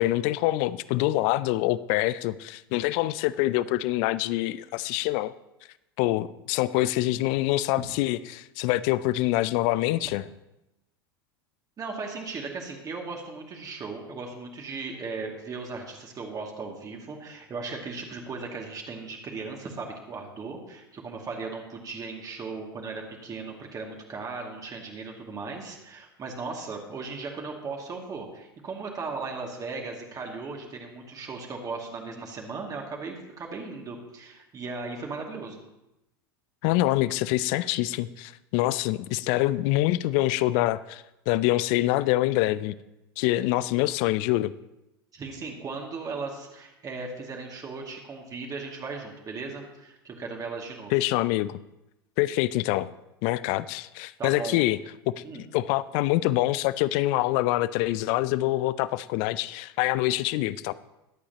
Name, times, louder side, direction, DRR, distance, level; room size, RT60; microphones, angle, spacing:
voice 1, 0.0-5.3 6.0-10.2 36.6-42.8 43.2-44.5 50.9-51.6 52.2-52.9 53.2-54.8 55.2-60.7, left 16 dB, 50° left, 18 dB, 0.5 m, -25 dB
voice 2, 11.8-35.6 45.1-50.9 54.2-54.6 55.2-55.4, right 4 dB, 30° right, 0 dB, 2.3 m, -37 dB
21.5 x 8.5 x 2.9 m, 0.93 s
figure-of-eight pair, 85°, 13 cm